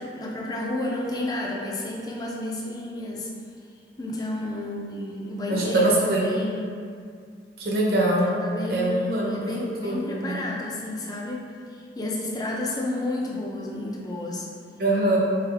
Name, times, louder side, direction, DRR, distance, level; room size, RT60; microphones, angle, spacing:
voice 1, 0.0-3.3 4.0-6.7 8.3-11.4 11.7-14.5, left 1 dB, 20° left, -2 dB, 0.5 m, -31 dB
voice 2, 5.5-6.3 7.6-8.3 8.7-9.5 9.8-10.4 14.8-15.2, right 2 dB, 55° right, -3 dB, 0.8 m, -23 dB
4.2 x 3.5 x 3.4 m, 2.2 s
head